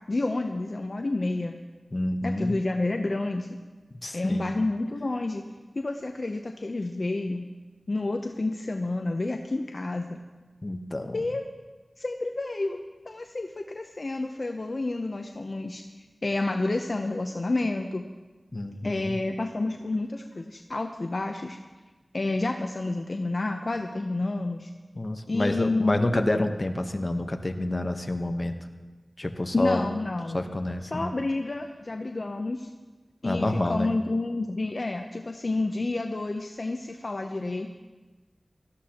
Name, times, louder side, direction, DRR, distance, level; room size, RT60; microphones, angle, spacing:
voice 1, 0.1-1.6 2.2-3.6 4.1-5.4 5.7-7.5 7.9-10.2 11.1-11.4 12.0-15.8 16.2-18.1 18.8-21.6 22.1-24.7 25.3-26.2 29.5-30.4 30.8-32.7 33.2-37.7, left 2 dB, 60° left, 4 dB, 0.7 m, -29 dB
voice 2, 1.9-2.6 4.0-4.6 10.6-11.2 18.5-19.2 24.9-28.5 29.2-29.9 30.3-31.1 33.2-33.9, left 1 dB, 40° left, 6 dB, 1.0 m, -28 dB
17.5 x 13.5 x 2.9 m, 1.2 s
wide cardioid pair, 60°, 0 cm